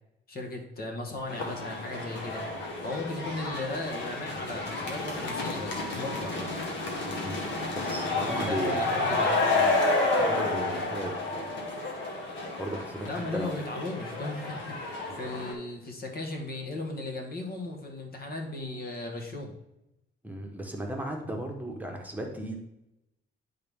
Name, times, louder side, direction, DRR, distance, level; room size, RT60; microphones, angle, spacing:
voice 1, 0.3-2.4 2.8-6.6 8.3-9.8 13.1-19.5, left 2 dB, 50° left, 1 dB, 1.8 m, -36 dB
sound 1, 1.3-15.5, left 2 dB, 70° left, 1.7 m, -30 dB
voice 2, 7.1-9.0 10.1-11.5 12.6-13.5 20.2-22.6, right 1 dB, 10° right, 1 dB, 1.2 m, -36 dB
10.5 x 4.0 x 3.6 m, 0.90 s
cardioid pair, 90°, 20 cm